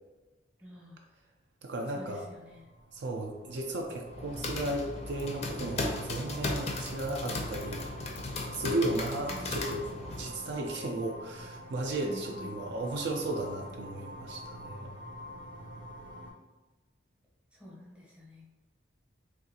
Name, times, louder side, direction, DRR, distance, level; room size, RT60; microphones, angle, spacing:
voice 1, 0.6-1.0 1.9-2.6 9.3-9.8 12.0-12.5 17.5-18.5, equal, 5° right, -4 dB, 0.7 m, -48 dB
voice 2, 1.6-2.3 2.9-7.9 8.5-9.9 10.2-14.9, right 2 dB, 60° right, 1 dB, 0.4 m, -35 dB
sound 1, 2.3-16.3, equal, 80° right, 1.0 m, -46 dB
sound 2, 4.1-10.3, left 2 dB, 35° left, 0.4 m, -36 dB
3.7 x 2.4 x 2.7 m, 1.2 s
head